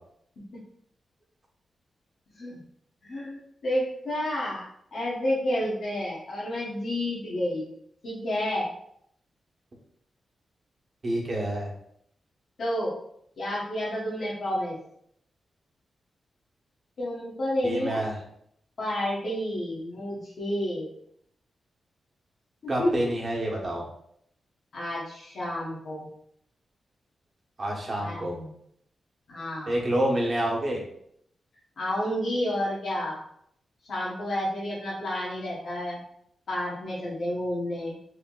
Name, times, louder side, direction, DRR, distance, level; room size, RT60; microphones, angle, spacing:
voice 1, 3.0-4.6 4.9-7.7 8.0-8.7 12.6-12.9 13.4-14.7 17.0-18.0 18.8-20.9 22.6-23.1 24.7-26.1 27.9-28.5 29.3-29.8 31.8-33.2 33.9-36.0 36.5-37.9, left 1 dB, 65° left, -6 dB, 1.0 m, -30 dB
voice 2, 11.0-11.7 17.6-18.2 22.7-23.9 27.6-28.3 29.7-30.8, right 1 dB, 45° right, -2 dB, 1.1 m, -28 dB
3.4 x 2.1 x 3.8 m, 0.70 s
cardioid pair, 75°, 0 cm